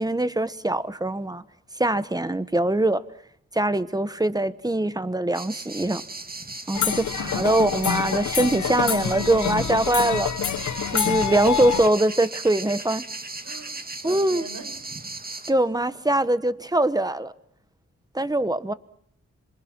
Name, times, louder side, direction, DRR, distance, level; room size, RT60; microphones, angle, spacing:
voice 1, 0.0-1.4 1.8-3.1 3.5-6.0 6.7-10.3 10.9-13.0 14.0-14.4 15.5-17.3 18.1-18.7, right 1 dB, 15° right, 1.2 m, -23 dB
sound 1, 5.3-15.5, right 3 dB, 30° right, 2.1 m, -37 dB
sound 2, 6.7-11.9, left 8 dB, 80° left, 1.0 m, -26 dB
voice 2, 7.2-7.6 9.5-9.7 13.4-14.9 18.6-18.8, right 4 dB, 85° right, 4.8 m, -43 dB
27.0 x 26.0 x 6.2 m
wide cardioid pair, 85°, 29 cm